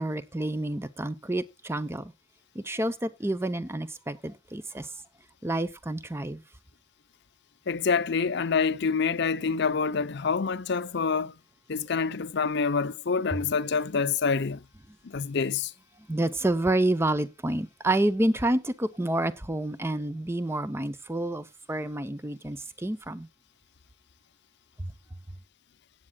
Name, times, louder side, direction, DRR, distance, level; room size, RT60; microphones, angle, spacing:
voice 1, 0.0-2.1 2.6-4.9 5.4-6.4 16.1-23.3 24.8-24.9, right 1 dB, 10° right, 0.6 m, -29 dB
voice 2, 7.7-11.3 11.7-14.6 15.0-15.7, left 5 dB, 55° left, 0.6 m, -27 dB
17.0 x 8.7 x 2.3 m
head